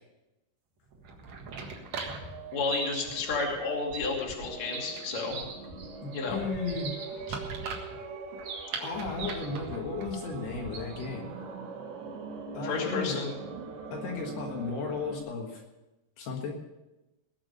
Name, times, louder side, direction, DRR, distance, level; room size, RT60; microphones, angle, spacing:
sound 1, 0.9-11.2, right 4 dB, 50° right, 2.4 m, -40 dB
sound 2, 2.2-15.2, right 5 dB, 85° right, 4.2 m, -43 dB
voice 1, 2.5-5.4 6.1-6.4 12.6-13.4, left 4 dB, 45° left, -1 dB, 3.4 m, -31 dB
voice 2, 6.0-6.9 7.3-7.4 8.8-11.3 12.5-13.2 13.9-15.6 16.2-16.5, left 4 dB, 70° left, 0 dB, 3.6 m, -35 dB
20.0 x 7.5 x 6.6 m, 1.0 s
omnidirectional pair, 4.9 m